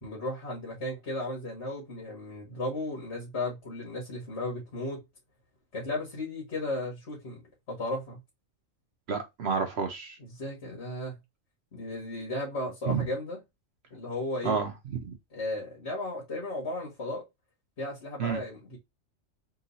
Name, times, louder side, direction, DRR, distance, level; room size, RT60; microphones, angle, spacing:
voice 1, 0.0-5.0 5.7-7.4 7.7-8.2 10.2-11.2 11.7-13.4 13.9-14.6 15.3-17.2 17.8-18.8, left 1 dB, 55° left, 1.8 m, -35 dB
voice 2, 9.1-10.2 12.9-13.0 14.4-15.1 18.2-18.4, right 5 dB, 60° right, 1.0 m, -30 dB
3.8 x 2.7 x 4.0 m
omnidirectional pair, 1.3 m